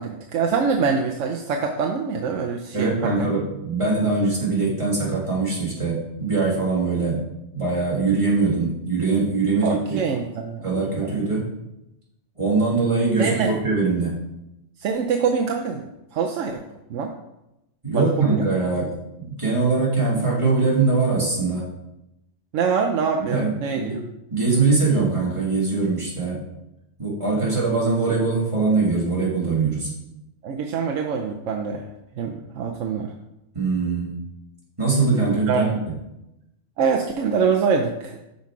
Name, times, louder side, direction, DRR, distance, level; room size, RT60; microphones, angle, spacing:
voice 1, 0.0-3.3 9.6-11.1 13.2-13.5 14.8-16.6 16.9-17.1 17.9-18.4 22.5-24.0 30.4-31.8 32.2-33.1 35.5-35.8 36.8-38.2, right 5 dB, 90° right, 2 dB, 1.0 m, -24 dB
voice 2, 2.7-7.2 7.5-10.0 10.6-11.5 12.4-14.2 17.8-18.9 19.2-21.7 23.3-24.0 24.3-26.4 27.0-29.9 33.5-34.2 34.8-35.7, right 4 dB, 25° right, -5 dB, 2.3 m, -22 dB
6.5 x 5.3 x 4.7 m, 0.89 s
omnidirectional pair, 1.2 m